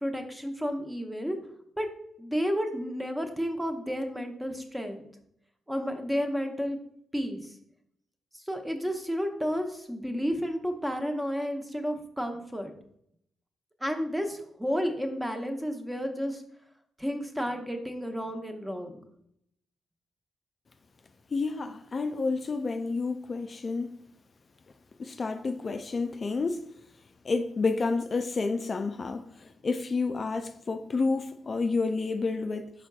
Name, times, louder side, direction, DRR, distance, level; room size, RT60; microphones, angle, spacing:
voice 1, 0.0-1.4 1.8-1.9 2.2-5.1 5.7-6.8 7.1-7.6 8.3-12.7 13.8-16.4 17.0-19.1, equal, 5° right, 0.7 m, -31 dB
voice 2, 21.3-23.9 25.0-26.7 27.2-32.7, left 4 dB, 40° left, 0.3 m, -30 dB
4.6 x 4.3 x 2.3 m
supercardioid pair, 60°, 0 cm